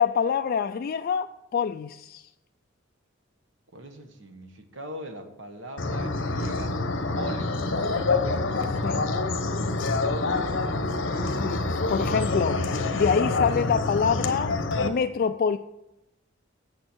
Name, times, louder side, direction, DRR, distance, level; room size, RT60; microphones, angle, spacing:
voice 1, 0.0-2.3 8.8-9.0 11.3-15.6, left 6 dB, 50° left, 0.3 m, -26 dB
voice 2, 3.7-6.8 7.1-7.9 10.1-10.2, right 1 dB, 70° right, 1.3 m, -41 dB
sound 1, 5.8-14.9, left 3 dB, 70° left, 1.0 m, -26 dB
8.8 x 7.2 x 6.1 m
head